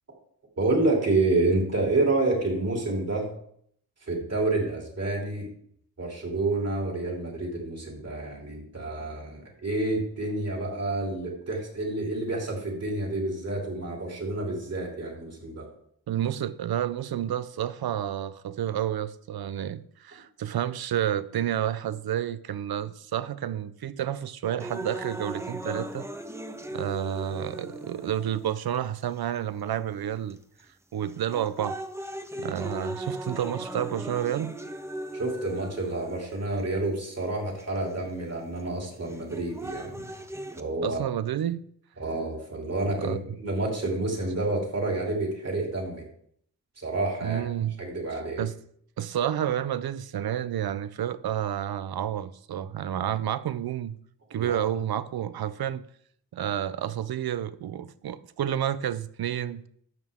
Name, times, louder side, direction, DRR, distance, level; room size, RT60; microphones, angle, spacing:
voice 1, 0.6-3.3 4.0-5.5 6.0-15.7 35.1-40.1 40.6-41.0 42.0-46.0 46.8-47.4 47.8-48.4 54.4-54.6, right 2 dB, 45° right, 3.0 m, -29 dB
voice 2, 16.1-26.1 26.7-30.4 30.9-31.8 32.4-34.5 40.8-41.6 43.0-43.4 47.2-47.8 48.4-48.5 49.0-54.0 54.3-55.8 56.3-59.6, right 10 dB, 80° right, 0.6 m, -30 dB
sound 1, 24.6-28.6 29.4-29.5 30.3-30.6 31.1-36.6 37.6-37.7 39.1-40.6, right 1 dB, 5° right, 0.7 m, -38 dB
12.5 x 7.4 x 3.6 m
wide cardioid pair, 100°, 37 cm